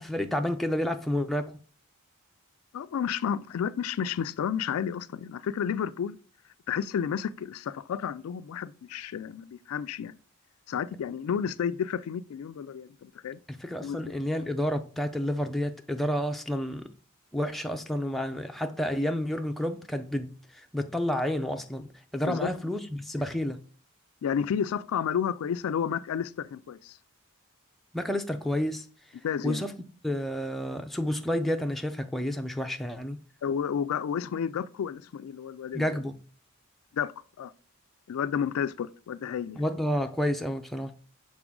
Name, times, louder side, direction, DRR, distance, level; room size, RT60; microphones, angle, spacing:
voice 1, 0.0-1.6 13.6-16.9 17.3-21.8 22.1-23.6 27.9-28.8 29.4-29.7 30.0-33.2 35.7-36.2 39.6-40.9, equal, ahead, 0.4 m, -30 dB
voice 2, 2.7-6.2 6.7-10.1 10.7-13.4 13.8-14.2 22.3-22.5 24.2-27.0 29.2-29.6 33.4-36.0 36.9-37.1 37.4-37.5 38.1-39.6, left 8 dB, 75° left, 0.3 m, -31 dB
5.9 x 4.2 x 3.7 m
head